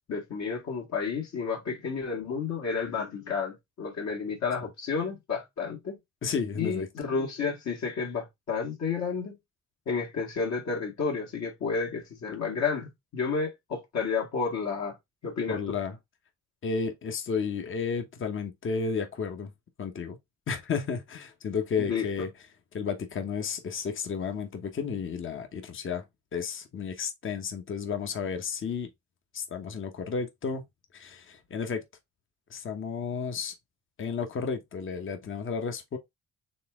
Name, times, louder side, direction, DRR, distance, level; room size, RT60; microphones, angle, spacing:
voice 1, 0.1-6.0 6.6-9.3 9.9-15.0 15.2-15.6 21.8-22.1, left 5 dB, 65° left, 1.8 m, -31 dB
voice 2, 6.2-6.9 15.5-16.0 16.6-19.5 19.8-20.2 20.5-22.3 22.7-26.0 26.3-28.9 29.3-30.6 30.9-31.8 32.5-33.5 34.0-36.0, left 5 dB, 40° left, 1.0 m, -32 dB
4.1 x 3.5 x 3.5 m
cardioid pair, 90°, 30 cm